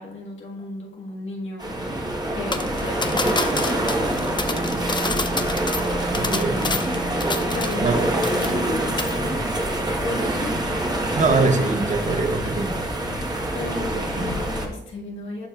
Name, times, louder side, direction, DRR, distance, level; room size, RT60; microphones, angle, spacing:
voice 1, 0.0-2.0 2.3-5.7 6.1-6.9 7.4-9.4 10.0-10.6 13.5-15.5, left 3 dB, 85° left, -3 dB, 1.7 m, -35 dB
sound 1, 1.6-14.7, right 1 dB, 20° right, 1.3 m, -25 dB
sound 2, 2.5-8.0 8.2-8.7 9.0-9.2, left 3 dB, 25° left, 0.6 m, -29 dB
sound 3, 3.2-9.3, right 3 dB, 80° right, 1.4 m, -36 dB
voice 2, 6.1-6.6 7.8-8.1 11.1-12.9, right 3 dB, 40° right, 7 dB, 0.9 m, -23 dB
11.5 x 4.3 x 2.4 m, 0.90 s
cardioid pair, 75°, 19 cm